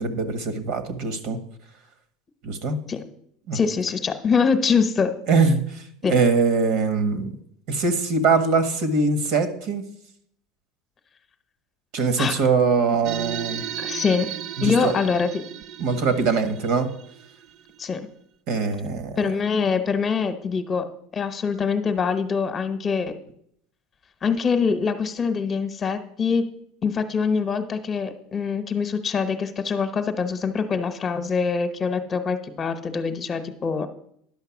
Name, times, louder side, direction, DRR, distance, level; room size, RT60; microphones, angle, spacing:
voice 1, 0.0-1.4 2.4-2.8 3.5-3.6 5.3-7.4 7.7-9.8 11.9-13.6 14.6-14.9 15.8-16.9 18.5-19.2, right 4 dB, 65° right, 10 dB, 1.6 m, -22 dB
voice 2, 3.5-5.1 6.0-6.2 12.2-12.3 13.8-14.3 14.6-15.4 17.8-18.0 19.2-20.9 21.1-23.1 24.2-26.4 26.8-33.9, left 5 dB, 30° left, 9 dB, 1.0 m, -24 dB
sound 1, 13.0-17.9, right 11 dB, 50° right, 0.4 m, -35 dB
10.5 x 5.7 x 7.2 m, 0.69 s
supercardioid pair, 125°, 0 cm